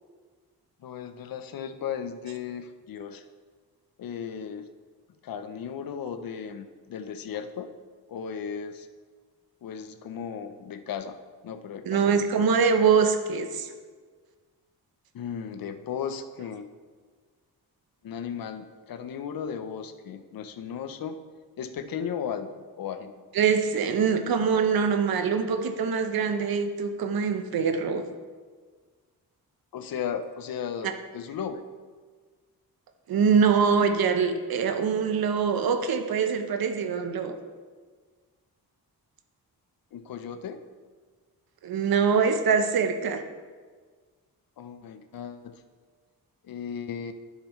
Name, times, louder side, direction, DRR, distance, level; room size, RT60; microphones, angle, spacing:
voice 1, 0.8-3.2 4.0-4.7 5.2-7.7 8.1-8.9 9.6-11.2 11.4-12.5 15.1-16.7 18.0-21.2 21.6-23.1 29.7-31.6 39.9-40.6 44.6-45.6 46.4-47.1, left 7 dB, 65° left, 9 dB, 0.6 m, -36 dB
voice 2, 11.8-13.7 23.3-28.0 30.8-30.9 33.1-37.3 41.6-43.2, right 6 dB, 70° right, 7 dB, 0.8 m, -24 dB
11.5 x 6.7 x 3.1 m, 1.5 s
wide cardioid pair, 160°, 38 cm